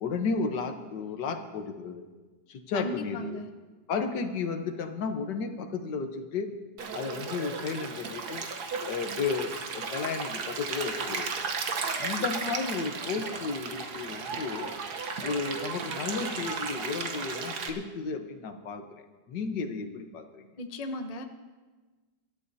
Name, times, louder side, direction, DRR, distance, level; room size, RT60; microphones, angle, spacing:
voice 1, 0.0-2.1 2.5-3.4 3.9-6.5 6.9-8.5 8.8-11.3 12.0-14.7 15.2-19.0 19.3-20.5, left 5 dB, 70° left, 7 dB, 1.6 m, -33 dB
voice 2, 2.7-3.5 20.6-21.2, left 1 dB, 35° left, 5 dB, 0.6 m, -36 dB
Stream, 6.8-17.7, right 4 dB, 65° right, 1.6 m, -35 dB
24.5 x 12.5 x 2.8 m, 1.3 s
omnidirectional pair, 1.9 m